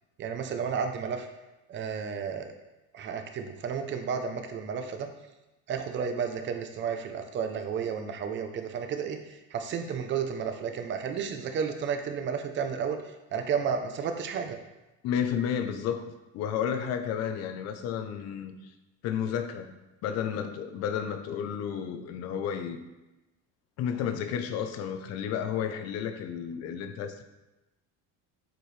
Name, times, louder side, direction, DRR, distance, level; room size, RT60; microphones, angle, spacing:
voice 1, 0.2-1.3 1.7-2.5 2.9-5.1 5.7-14.6, right 6 dB, 35° right, 6 dB, 0.7 m, -32 dB
voice 2, 15.0-18.7 19.0-19.7 20.0-22.8 23.8-27.2, left 8 dB, 50° left, 8 dB, 0.7 m, -32 dB
7.8 x 4.5 x 3.3 m, 1.0 s
cardioid pair, 145°, 32 cm